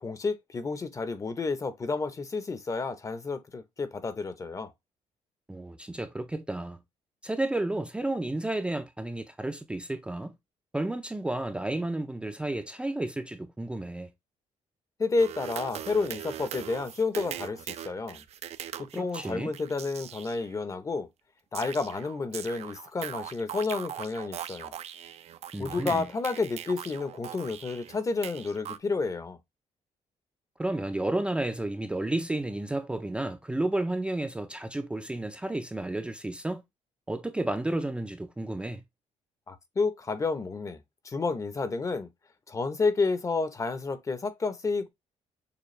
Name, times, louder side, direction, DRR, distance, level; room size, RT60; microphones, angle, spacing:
voice 1, 0.0-4.7 15.0-18.2 18.8-21.1 21.5-24.7 25.6-29.4 39.5-40.8 41.0-42.1 42.5-44.9, left 4 dB, 25° left, 0.7 m, -30 dB
voice 2, 5.5-6.8 7.2-10.3 10.7-14.1 18.9-19.5 25.5-26.1 30.6-36.6 37.1-38.8, right 2 dB, 10° right, 0.5 m, -32 dB
sound 1, 15.2-20.5 21.5-28.8, right 10 dB, 60° right, 0.5 m, -41 dB
6.8 x 2.3 x 3.1 m
cardioid pair, 120°, 12 cm